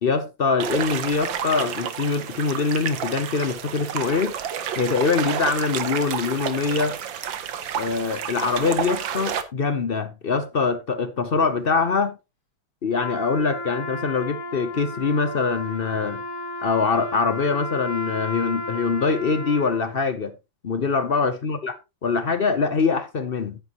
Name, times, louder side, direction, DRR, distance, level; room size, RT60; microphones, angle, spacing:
voice 1, 0.0-4.3 4.8-7.0 7.7-12.2 12.8-16.2 16.6-20.3 20.6-21.7 22.0-23.6, left 4 dB, 50° left, 0.7 m, -23 dB
sound 1, 0.6-9.4, right 8 dB, 85° right, 1.8 m, -30 dB
Trumpet, 12.9-19.9, left 2 dB, 25° left, 2.0 m, -33 dB
10.5 x 9.6 x 3.0 m
omnidirectional pair, 2.0 m